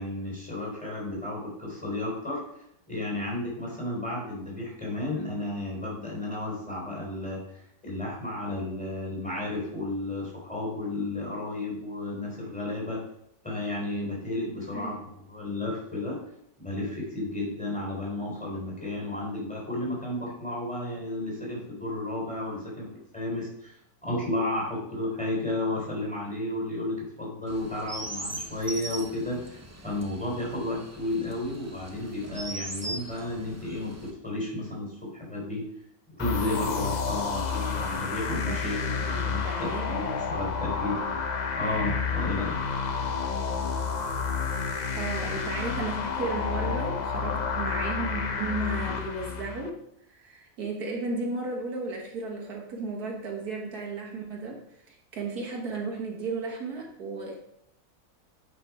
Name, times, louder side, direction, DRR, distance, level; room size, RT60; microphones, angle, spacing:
voice 1, 0.0-2.4 2.9-13.0 13.4-16.2 16.6-35.6 36.2-41.0 41.6-42.7, left 2 dB, 5° left, -3 dB, 3.7 m, -33 dB
Chirp tweet, 27.5-34.1, right 1 dB, 20° right, 0.4 m, -40 dB
sound 1, 36.2-49.7, left 5 dB, 50° left, 0.5 m, -30 dB
voice 2, 38.3-40.1 44.9-49.8 50.1-57.4, right 3 dB, 85° right, 0 dB, 2.0 m, -34 dB
8.9 x 5.1 x 4.8 m, 0.75 s
omnidirectional pair, 1.6 m